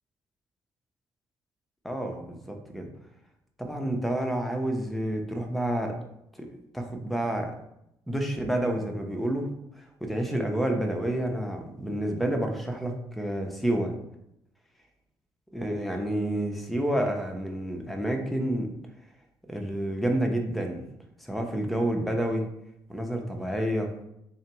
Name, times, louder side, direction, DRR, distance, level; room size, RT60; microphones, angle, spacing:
voice 1, 1.8-2.9 3.6-6.0 6.4-7.5 8.1-9.5 9.8-13.9 15.5-18.7 19.5-20.8 21.2-22.5 22.9-23.9, right 1 dB, ahead, 3 dB, 0.9 m, -29 dB
3.8 x 2.8 x 3.4 m, 0.79 s
hypercardioid pair, 50°, 11 cm